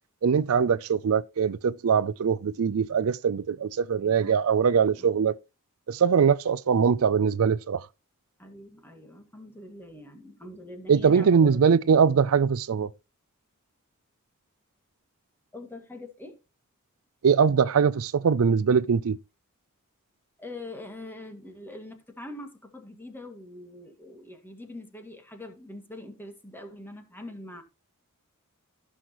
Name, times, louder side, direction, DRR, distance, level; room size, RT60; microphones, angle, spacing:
voice 1, 0.2-5.3 5.9-7.8 10.9-12.9 17.2-19.2, right 6 dB, 70° right, 0.4 m, -22 dB
voice 2, 4.0-4.4 4.7-5.1 8.4-11.7 15.5-16.4 20.4-27.6, left 1 dB, 10° left, 2.0 m, -43 dB
15.5 x 6.3 x 3.0 m
head